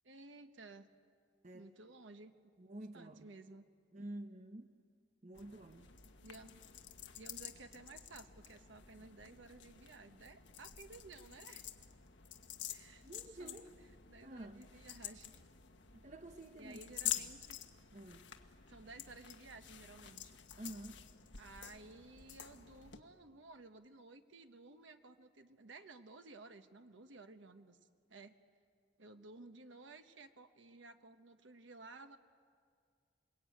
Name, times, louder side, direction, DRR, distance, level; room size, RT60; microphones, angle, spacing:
voice 1, 0.0-0.9 1.5-2.3 2.9-3.6 6.2-6.6 7.1-11.7 12.7-13.6 14.1-15.4 16.6-17.6 18.7-20.4 21.4-27.8 28.1-28.4 29.0-32.2, right 3 dB, 85° right, 8 dB, 1.1 m, -55 dB
voice 2, 2.6-3.3 3.9-4.7 5.2-5.9 13.0-13.7 14.2-14.7 15.9-16.8 17.2-17.3 17.9-18.3 20.6-21.0, right 1 dB, 40° right, 6 dB, 1.0 m, -49 dB
sound 1, 5.3-23.0, left 10 dB, 75° left, 1.4 m, -48 dB
29.0 x 21.0 x 9.1 m, 2.1 s
head